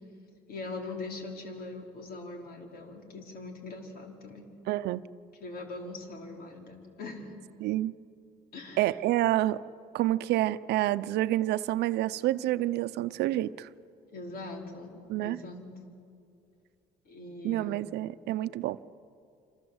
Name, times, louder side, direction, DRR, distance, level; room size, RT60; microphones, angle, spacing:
voice 1, 0.5-4.5 5.4-7.3 8.5-8.9 14.1-15.7 17.0-17.9, left 3 dB, 65° left, 2 dB, 4.7 m, -41 dB
voice 2, 4.7-5.0 7.6-7.9 8.8-9.6 9.9-13.7 15.1-15.4 17.4-18.8, right 15 dB, 80° right, 14 dB, 0.7 m, -28 dB
27.0 x 26.5 x 8.0 m, 2.5 s
cardioid pair, 110°, 17 cm